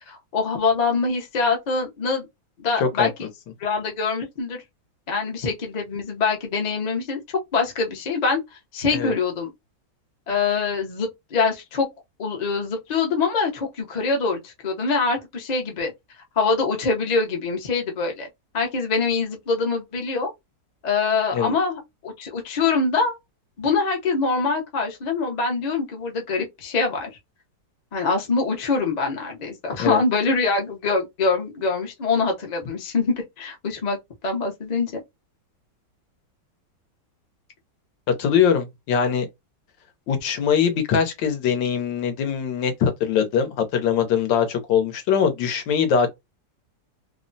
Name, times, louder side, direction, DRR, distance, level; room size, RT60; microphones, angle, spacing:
voice 1, 0.1-2.3 2.6-3.1 3.6-4.6 5.1-7.2 7.5-8.4 8.7-9.5 10.3-11.9 12.2-15.9 16.4-18.3 18.5-20.3 20.8-23.2 23.6-27.1 27.9-34.0 34.2-35.0, left 4 dB, 55° left, 0.4 m, -24 dB
voice 2, 2.8-3.3 8.9-9.1 21.3-21.5 29.8-30.0 38.2-39.3 40.1-46.1, left 7 dB, 85° left, 1.5 m, -22 dB
3.3 x 2.1 x 2.6 m
omnidirectional pair, 2.0 m